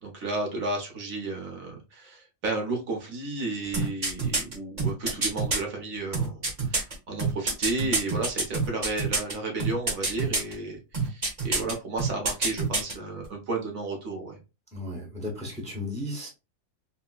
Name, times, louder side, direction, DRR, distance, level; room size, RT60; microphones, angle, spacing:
voice 1, 0.0-14.4, right 2 dB, 85° right, 1 dB, 1.5 m, -33 dB
sound 1, 3.7-5.6 6.1-9.3 9.6-10.5 10.9-11.7 12.0-12.9 13.2-13.3, right 3 dB, 35° right, 0.8 m, -26 dB
voice 2, 14.7-16.3, left 1 dB, 5° left, 0 dB, 0.7 m, -34 dB
4.3 x 2.0 x 2.3 m, 0.28 s
omnidirectional pair, 1.4 m